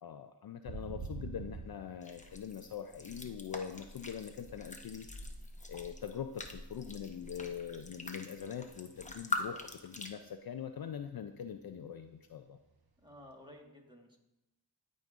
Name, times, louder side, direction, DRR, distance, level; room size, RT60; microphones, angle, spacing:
voice 1, 0.0-5.1 5.7-12.6, left 8 dB, 55° left, 8 dB, 0.5 m, -43 dB
sound 1, 0.6-4.0 4.3-6.6 6.8-7.2 7.5-9.4 9.7-9.8 10.2-10.6 10.9-11.0 13.2-13.3, right 4 dB, 50° right, 1.0 m, -46 dB
sound 2, 2.0-10.1, left 2 dB, 15° left, 0.8 m, -44 dB
voice 2, 13.0-14.2, left 1 dB, 10° right, 0 dB, 1.6 m, -54 dB
12.5 x 5.1 x 2.5 m, 0.89 s
cardioid pair, 50°, 47 cm